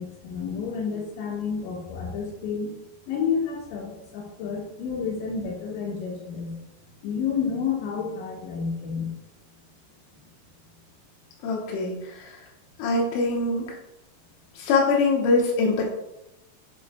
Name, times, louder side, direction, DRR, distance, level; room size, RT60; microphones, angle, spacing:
voice 1, 0.0-2.7 3.1-6.5 7.0-9.1, left 6 dB, 70° left, -2 dB, 3.6 m, -30 dB
voice 2, 11.4-12.4 12.8-13.8 14.6-15.9, left 3 dB, 90° left, -2 dB, 3.5 m, -23 dB
9.8 x 5.1 x 2.2 m, 0.87 s
omnidirectional pair, 5.5 m